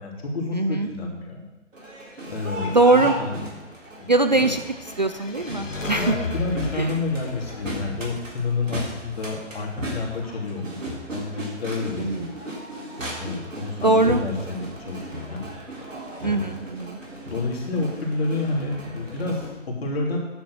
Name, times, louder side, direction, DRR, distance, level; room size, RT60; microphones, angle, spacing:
voice 1, 0.0-1.5 2.3-3.3 4.0-4.4 6.0-12.5 13.1-15.4 16.2-16.5 17.2-20.2, left 3 dB, 50° left, -1 dB, 3.3 m, -29 dB
voice 2, 0.5-0.9 2.7-3.2 4.1-4.6 5.0-6.1 6.8-6.9 12.0-12.3 13.8-14.2 16.2-17.0, right 2 dB, 40° right, 8 dB, 0.4 m, -21 dB
Crowd, 1.7-19.5, right 1 dB, 80° right, 4.0 m, -36 dB
sound 1, 4.7-9.0, left 4 dB, 80° left, 1.6 m, -35 dB
10.5 x 7.5 x 6.3 m, 1.1 s
figure-of-eight pair, 150°, 38 cm